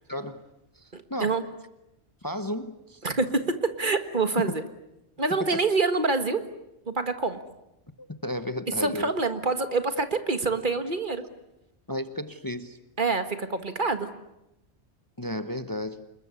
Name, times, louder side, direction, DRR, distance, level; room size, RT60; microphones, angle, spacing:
voice 1, 0.1-0.4 0.7-1.4 2.2-3.0 5.4-5.6 8.0-9.1 11.9-12.8 15.2-16.0, left 1 dB, 20° left, 10 dB, 1.0 m, -33 dB
voice 2, 0.9-1.4 3.0-4.6 5.2-6.4 6.9-7.4 8.8-11.2 13.0-14.1, right 3 dB, 45° right, 9 dB, 1.8 m, -26 dB
27.5 x 21.5 x 9.7 m, 0.88 s
omnidirectional pair, 1.2 m